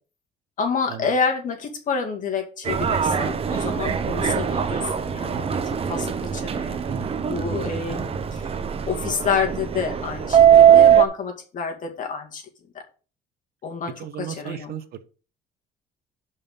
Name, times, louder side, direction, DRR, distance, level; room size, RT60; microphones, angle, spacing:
voice 1, 0.6-5.6 5.9-6.8 7.3-8.4 8.9-12.4 13.6-14.7, left 5 dB, 50° left, 3 dB, 2.3 m, -28 dB
Subway metro underground, 2.7-11.1, right 9 dB, 35° right, 0.8 m, -20 dB
voice 2, 6.8-7.2 14.0-15.0, right 10 dB, 65° right, 13 dB, 0.9 m, -35 dB
6.8 x 5.6 x 5.5 m, 0.37 s
cardioid pair, 110°, 17 cm